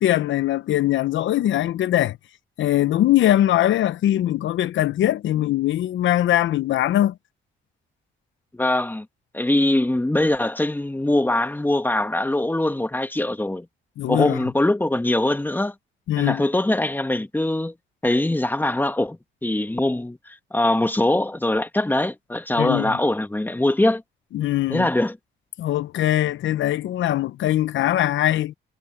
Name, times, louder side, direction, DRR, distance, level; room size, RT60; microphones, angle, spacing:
voice 1, 0.0-2.2 2.6-7.1 14.0-14.4 16.1-16.4 22.6-23.0 24.3-24.9 25.6-28.5, left 13 dB, 75° left, 0.9 m, -21 dB
voice 2, 8.5-9.0 9.3-13.6 14.1-15.7 16.2-17.7 18.0-24.0 24.7-25.2, left 1 dB, 10° left, 1.7 m, -22 dB
cardioid pair, 90°, 20 cm